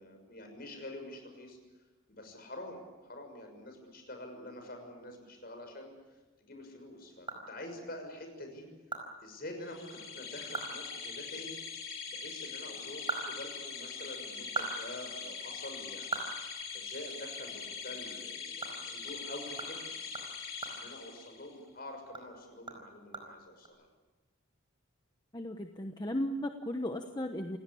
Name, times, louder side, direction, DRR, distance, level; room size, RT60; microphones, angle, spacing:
voice 1, 0.0-1.6 2.1-5.9 6.4-8.7 9.2-11.6 12.1-16.2 16.7-20.0 20.7-23.9, left 1 dB, 45° left, 5 dB, 6.5 m, -46 dB
sound 1, 7.0-8.0 8.4-8.5 8.9-9.0 9.4-9.5 9.9-10.0 10.4-10.8 11.1-11.2 12.7-14.0 14.3-17.2 17.6-17.7 18.1-21.7 22.0-23.7, right 3 dB, 25° right, 4.7 m, -42 dB
sound 2, 9.7-21.5, left 5 dB, 75° left, 3.8 m, -42 dB
voice 2, 25.3-27.6, left 1 dB, 20° left, 5 dB, 1.0 m, -35 dB
28.5 x 17.0 x 8.6 m, 1.2 s
head